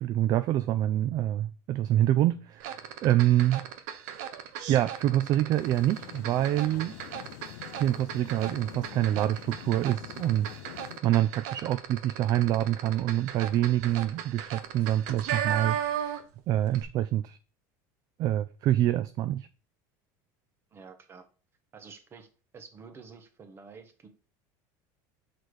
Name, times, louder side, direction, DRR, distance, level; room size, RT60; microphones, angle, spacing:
voice 1, 0.0-3.6 4.7-6.9 7.8-10.6 11.0-15.8 16.5-17.4 18.2-19.5, right 13 dB, 40° right, 0.3 m, -26 dB
sound 1, 2.6-16.4 16.7-16.8, right 9 dB, 75° right, 0.9 m, -36 dB
sound 2, 5.5-11.0, left 18 dB, 80° left, 0.4 m, -45 dB
voice 2, 20.7-21.3 21.7-22.3 22.5-24.1, right 5 dB, 25° right, 1.0 m, -49 dB
6.3 x 4.0 x 4.8 m
cardioid pair, 145°, 9 cm